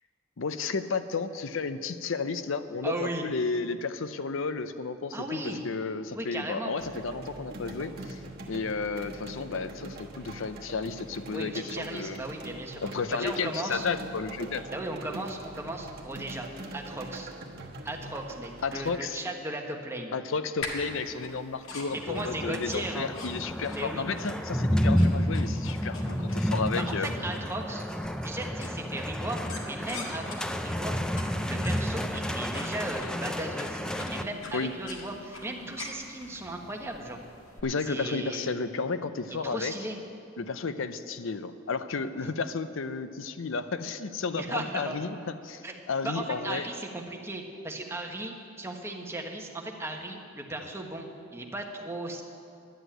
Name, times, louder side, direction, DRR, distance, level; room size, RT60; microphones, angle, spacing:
voice 1, 0.4-8.2 8.5-12.2 12.8-14.6 18.6-19.2 20.1-27.1 34.5-34.7 37.6-39.7 40.4-46.7, left 4 dB, 70° left, 11 dB, 0.6 m, -32 dB
voice 2, 2.8-3.2 5.1-5.6 6.1-6.7 11.3-12.8 13.1-13.9 14.7-16.5 16.7-17.3 17.8-20.2 21.9-23.1 23.7-24.0 26.7-27.9 28.2-31.0 31.4-37.2 37.8-38.5 39.4-40.0 44.3-45.0 45.6-45.7 46.0-52.2, right 1 dB, 15° right, 1 dB, 1.2 m, -36 dB
sound 1, 6.8-19.0, right 2 dB, 50° right, 1.3 m, -43 dB
sound 2, 20.6-37.6, left 2 dB, 85° left, 1.8 m, -44 dB
sound 3, 21.9-34.2, equal, 5° left, 0.5 m, -30 dB
11.5 x 8.1 x 9.1 m, 2.5 s
head